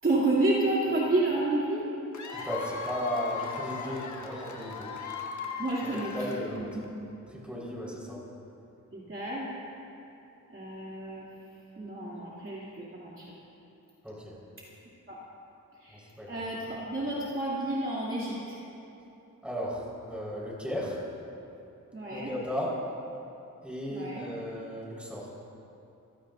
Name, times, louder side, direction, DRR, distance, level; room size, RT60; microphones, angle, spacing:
voice 1, 0.0-1.8 5.6-6.1 6.5-6.8 8.9-9.5 10.5-11.3 11.8-13.3 15.1-15.2 15.8-18.6 21.9-22.3 23.9-24.3, right 2 dB, 40° right, -7 dB, 2.8 m, -30 dB
Cheering / Applause / Crowd, 2.1-6.9, left 5 dB, 60° left, 1.3 m, -38 dB
voice 2, 2.3-4.9 6.1-6.7 7.3-8.2 14.0-14.4 15.9-16.4 19.4-21.0 22.1-22.8 23.6-25.3, equal, 5° right, -5 dB, 4.7 m, -35 dB
27.0 x 17.0 x 2.7 m, 2.9 s
wide cardioid pair, 120°, 33 cm